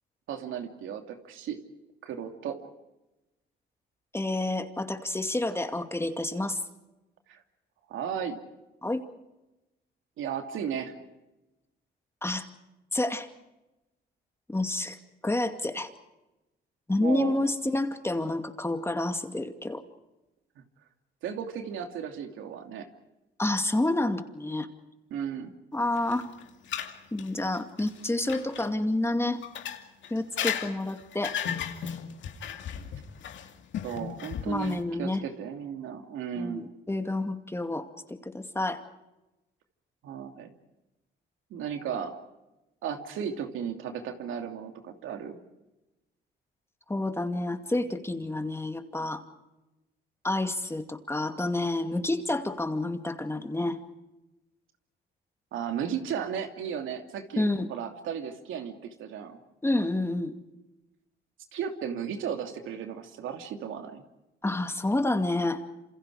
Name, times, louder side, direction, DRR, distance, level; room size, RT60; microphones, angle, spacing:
voice 1, 0.3-1.6 2.0-2.6 7.3-7.4 7.9-8.4 10.2-10.9 17.0-17.4 21.2-22.9 25.1-25.5 33.8-36.6 40.0-40.5 41.5-42.2 42.8-45.4 55.5-59.4 61.5-64.0, right 8 dB, 85° right, 5 dB, 2.9 m, -35 dB
voice 2, 4.1-6.6 8.8-9.0 12.2-12.5 12.9-13.3 14.5-15.0 15.2-15.9 16.9-19.8 23.4-24.7 25.7-26.3 27.1-29.4 30.1-31.3 34.5-35.2 36.3-38.8 46.9-49.2 50.2-53.8 57.4-57.7 59.6-60.3 64.4-65.6, left 2 dB, 10° left, 7 dB, 2.3 m, -29 dB
sound 1, 26.0-28.7 29.4-34.8, left 8 dB, 70° left, 2.5 m, -35 dB
27.5 x 27.5 x 5.0 m, 0.99 s
cardioid pair, 90°, 20 cm